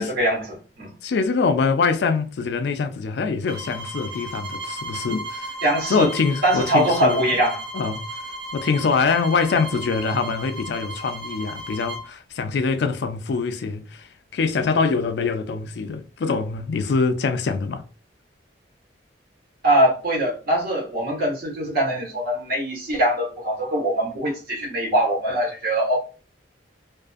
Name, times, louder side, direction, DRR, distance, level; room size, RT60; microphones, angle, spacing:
voice 1, 0.0-0.9 5.6-6.1 6.4-7.6 19.6-26.0, right 1 dB, 55° right, 1.1 m, -22 dB
voice 2, 1.0-5.5 5.9-7.3 7.7-8.0 8.5-17.8, left 4 dB, 65° left, 0.3 m, -24 dB
sound 1, 3.4-12.1, right 1 dB, 90° right, 0.9 m, -35 dB
2.4 x 2.4 x 2.4 m
head